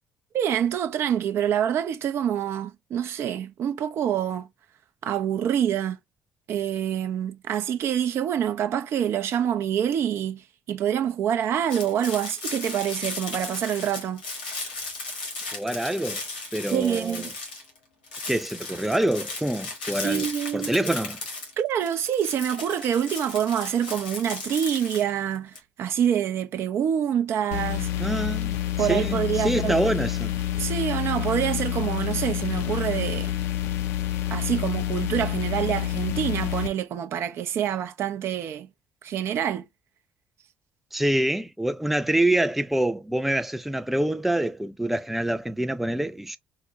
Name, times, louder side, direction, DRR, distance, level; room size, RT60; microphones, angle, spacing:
voice 1, 0.3-4.5 5.0-6.0 6.5-10.4 10.7-14.2 16.7-17.3 20.0-20.7 21.6-27.9 28.8-29.7 30.6-33.4 34.3-38.7 39.0-39.6, right 9 dB, 55° right, 0.6 m, -26 dB
sound 1, 11.7-17.8 18.0-25.6, left 3 dB, 90° left, 1.2 m, -36 dB
voice 2, 15.5-16.2 16.5-17.3 18.3-21.2 28.0-30.3 40.9-46.4, right 1 dB, 5° right, 0.4 m, -26 dB
sound 2, 27.5-36.7, left 12 dB, 70° left, 0.5 m, -28 dB
4.8 x 2.1 x 2.7 m
hypercardioid pair, 50°, 5 cm